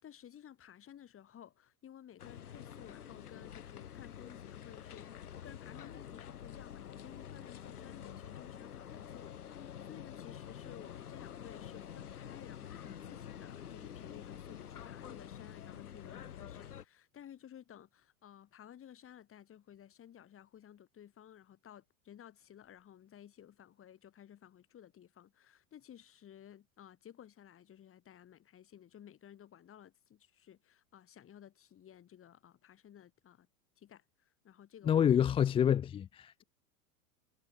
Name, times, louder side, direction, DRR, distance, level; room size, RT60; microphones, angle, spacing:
voice 1, 0.0-33.5 33.8-35.0, left 10 dB, 30° left, 6.5 m, -55 dB
sound 1, 2.2-16.9, left 9 dB, 85° left, 2.8 m, -48 dB
voice 2, 34.9-36.4, left 9 dB, 15° left, 0.4 m, -27 dB
hypercardioid pair, 105°, 44 cm